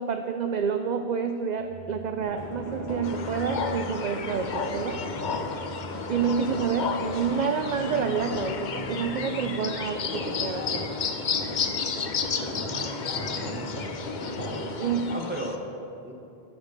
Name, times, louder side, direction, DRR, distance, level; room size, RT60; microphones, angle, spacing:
voice 1, 0.0-5.0 6.1-10.9 14.8-15.2, right 6 dB, 55° right, 7 dB, 0.5 m, -28 dB
sound 1, 1.6-6.8, equal, 10° left, 2.4 m, -45 dB
sound 2, 2.2-14.9, left 1 dB, 70° left, 3.0 m, -37 dB
sound 3, 3.0-15.6, left 5 dB, 50° left, 0.7 m, -32 dB
voice 2, 12.4-13.0 13.2-13.9 14.7-15.6 16.0-16.1, right 1 dB, 10° right, 0 dB, 1.1 m, -38 dB
14.0 x 5.2 x 6.5 m, 2.7 s
omnidirectional pair, 1.1 m